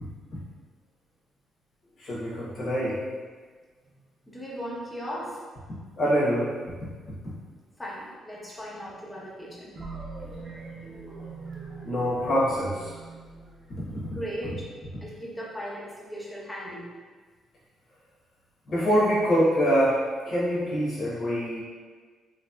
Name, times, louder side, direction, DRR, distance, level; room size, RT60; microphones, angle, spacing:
voice 1, 2.0-3.0 6.0-6.5 11.8-12.9 18.7-21.6, equal, 50° left, -7 dB, 1.0 m, -24 dB
voice 2, 4.2-5.4 7.4-7.5 7.8-9.8 10.3-11.9 14.1-14.7 15.0-16.9, equal, 15° left, -5 dB, 0.8 m, -38 dB
sound 1, 9.8-14.4, right 4 dB, 50° right, 0.8 m, -42 dB
3.0 x 2.8 x 2.3 m, 1.5 s
cardioid pair, 90°, 0 cm